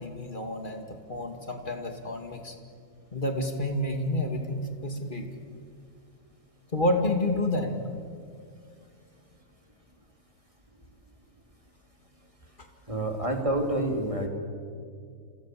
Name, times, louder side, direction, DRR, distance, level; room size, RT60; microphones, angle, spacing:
voice 1, 0.0-2.6 3.1-5.3 6.7-7.8, left 1 dB, 30° left, 5 dB, 2.7 m, -29 dB
voice 2, 12.9-14.3, right 1 dB, 20° right, 3 dB, 3.4 m, -28 dB
28.5 x 26.5 x 7.8 m, 2.2 s
omnidirectional pair, 1.6 m